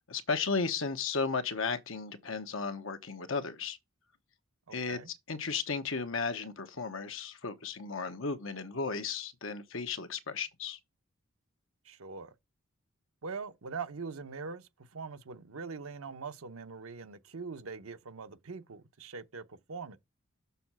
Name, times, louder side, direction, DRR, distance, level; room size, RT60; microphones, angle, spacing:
voice 1, 0.1-3.8 4.7-5.0 5.3-10.8, left 4 dB, 65° left, 1.0 m, -34 dB
voice 2, 4.7-5.1 11.8-12.3 13.2-20.0, right 5 dB, 85° right, 0.8 m, -42 dB
6.9 x 4.0 x 6.0 m
head